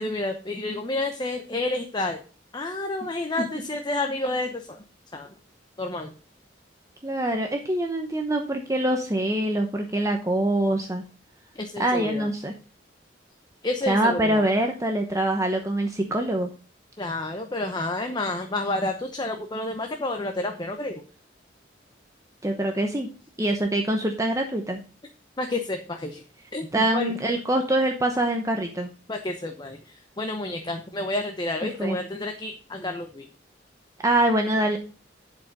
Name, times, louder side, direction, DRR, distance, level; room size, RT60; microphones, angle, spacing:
voice 1, 0.0-2.2 2.5-4.8 5.1-5.3 5.8-6.1 11.5-12.3 13.6-14.5 17.0-21.0 23.4-23.5 25.4-26.2 26.5-27.1 29.1-33.3, left 2 dB, 25° left, 4 dB, 0.8 m, -30 dB
voice 2, 7.0-11.0 11.8-12.5 13.9-16.5 22.4-23.1 23.4-24.8 26.7-28.9 31.8-32.0 34.0-34.8, right 1 dB, 15° right, 3 dB, 0.9 m, -24 dB
11.0 x 5.1 x 5.3 m, 0.37 s
head